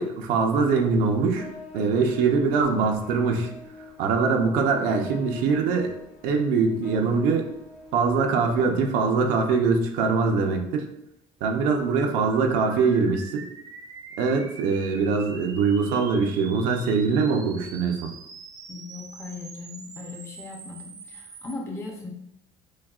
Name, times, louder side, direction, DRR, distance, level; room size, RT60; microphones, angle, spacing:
voice 1, 0.0-1.5 1.7-3.5 4.0-5.9 6.2-7.5 7.9-10.9 11.4-13.5 14.2-18.1, right 4 dB, 80° right, 3 dB, 0.7 m, -23 dB
sound 1, 0.5-9.0, left 3 dB, 80° left, 1.3 m, -45 dB
sound 2, 11.6-21.5, right 4 dB, 25° right, 0.5 m, -44 dB
voice 2, 18.7-22.1, left 3 dB, 20° left, 0 dB, 0.7 m, -38 dB
6.3 x 2.3 x 2.4 m, 0.77 s
cardioid pair, 140°, 14 cm